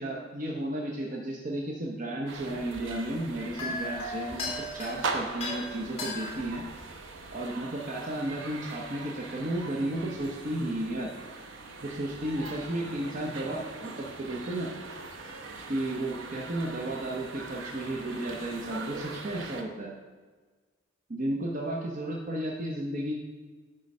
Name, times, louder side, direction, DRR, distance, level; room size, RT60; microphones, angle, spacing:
voice 1, 0.0-6.6 7.3-11.1 11.8-14.7 15.7-19.9 21.1-23.2, right 1 dB, 40° right, -2 dB, 0.8 m, -33 dB
sound 1, 2.3-19.6, right 3 dB, 70° right, 0.8 m, -41 dB
sound 2, 2.4-7.4, left 2 dB, 30° left, 1.9 m, -38 dB
9.4 x 3.8 x 5.4 m, 1.4 s
head